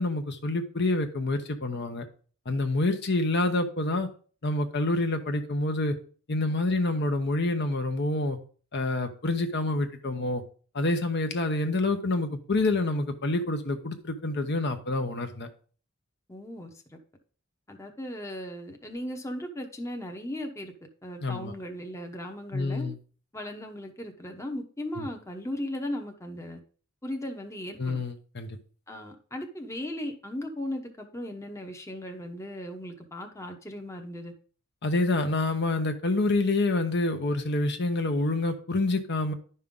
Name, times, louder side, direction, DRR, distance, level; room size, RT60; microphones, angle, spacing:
voice 1, 0.0-2.0 2.5-4.1 4.4-6.0 6.3-8.4 8.7-10.4 10.7-15.5 21.2-21.5 22.5-23.0 25.0-25.1 27.8-28.6 34.8-39.3, left 2 dB, 50° left, 6 dB, 0.9 m, -27 dB
voice 2, 16.3-17.0 17.7-20.7 21.0-22.9 23.3-26.6 27.0-28.0 28.9-34.3, left 1 dB, 15° left, 3 dB, 0.9 m, -37 dB
11.0 x 5.5 x 3.7 m, 0.41 s
head